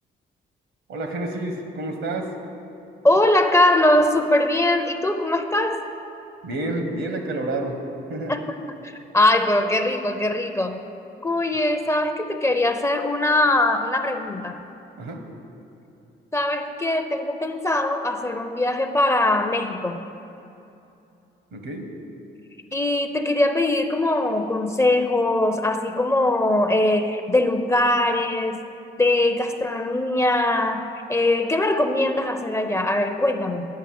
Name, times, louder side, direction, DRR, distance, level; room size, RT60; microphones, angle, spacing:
voice 1, 0.9-2.3 6.4-7.8 8.1-8.3 15.0-15.2 21.5-21.9, right 2 dB, 75° right, 4 dB, 1.4 m, -29 dB
voice 2, 3.0-5.8 8.3-8.6 8.8-10.8 11.2-14.6 16.3-20.0 22.7-28.6 29.0-33.7, left 1 dB, 15° left, 7 dB, 0.6 m, -21 dB
9.4 x 5.3 x 7.8 m, 2.8 s
cardioid pair, 90°, 20 cm